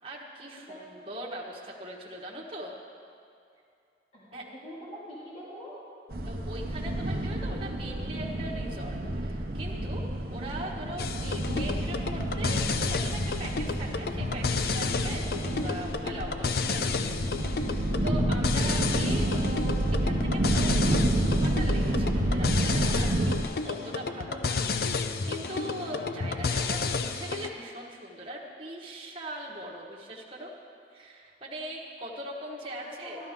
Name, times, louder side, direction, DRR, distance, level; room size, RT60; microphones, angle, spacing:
voice 1, 0.0-2.7 4.3-4.5 6.3-23.3 23.6-24.6 25.2-30.5 30.9-33.2, right 1 dB, 30° right, -4 dB, 1.3 m, -40 dB
voice 2, 4.1-5.8 32.8-33.3, equal, 35° left, -9 dB, 2.2 m, -44 dB
sound 1, 6.1-23.4, right 1 dB, 55° right, 0.9 m, -29 dB
sound 2, 11.0-27.5, left 4 dB, 55° left, 0.5 m, -31 dB
12.5 x 12.5 x 3.7 m, 2.5 s
head